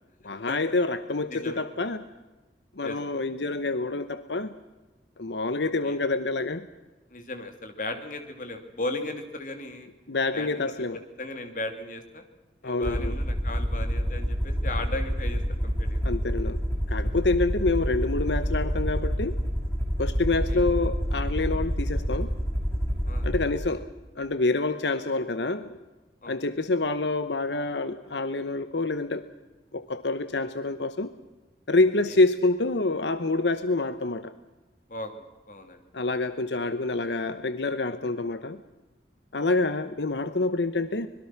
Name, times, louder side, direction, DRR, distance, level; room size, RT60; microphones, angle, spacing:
voice 1, 0.2-2.0 2.8-4.5 5.2-6.7 10.1-11.0 12.6-13.2 16.0-16.6 16.9-19.4 20.0-22.3 23.2-23.9 24.1-25.8 26.3-29.2 29.7-31.1 31.7-34.3 35.9-38.6 39.3-41.1, left 3 dB, 85° left, 11 dB, 1.0 m, -27 dB
voice 2, 1.3-1.6 2.8-3.0 5.6-6.0 7.1-9.9 10.3-10.8 11.2-12.2 12.6-16.0 20.5-20.6 23.1-23.4 26.2-26.4 32.1-32.2 34.9-35.8, left 2 dB, 50° left, 6 dB, 2.9 m, -36 dB
Aircraft, 12.8-23.5, equal, 15° left, 5.8 m, -28 dB
25.5 x 21.5 x 6.0 m, 1.2 s
head